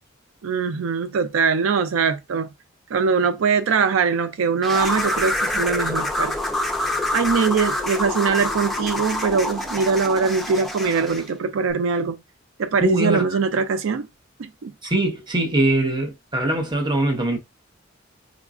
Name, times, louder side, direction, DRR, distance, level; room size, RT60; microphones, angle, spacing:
voice 1, 0.4-2.5 2.9-6.3 6.9-12.2 12.6-14.1 14.4-14.7, right 5 dB, 80° right, 0.4 m, -22 dB
sound 1, 4.6-11.3, left 1 dB, ahead, 0.6 m, -26 dB
voice 2, 12.8-13.4 14.8-17.4, right 1 dB, 25° right, 0.9 m, -22 dB
4.9 x 2.3 x 2.4 m
head